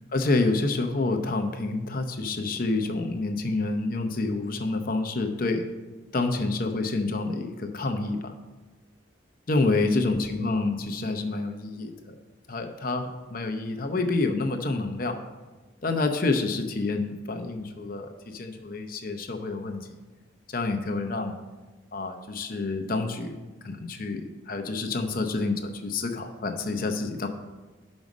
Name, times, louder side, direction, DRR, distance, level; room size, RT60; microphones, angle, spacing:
voice 1, 0.1-5.6 6.1-8.3 9.5-12.1 12.5-15.2 15.8-19.9 20.5-21.4 21.9-23.4 23.6-27.3, left 3 dB, 45° left, 5 dB, 0.7 m, -28 dB
6.2 x 5.3 x 6.1 m, 1.2 s
head